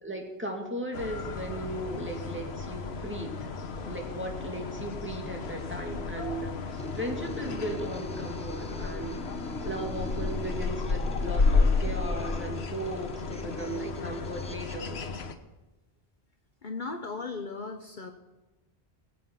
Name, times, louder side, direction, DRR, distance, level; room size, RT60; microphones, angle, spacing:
voice 1, 0.0-3.3 3.8-9.2 9.6-15.0, right 1 dB, 10° right, 0 dB, 2.4 m, -37 dB
sound 1, 0.9-15.3, left 4 dB, 75° left, 1.3 m, -32 dB
sound 2, 6.7-14.9, left 1 dB, 5° left, 0.7 m, -42 dB
voice 2, 16.6-18.1, left 4 dB, 50° left, 5 dB, 1.0 m, -36 dB
22.5 x 7.9 x 5.7 m, 1.1 s
omnidirectional pair, 1.1 m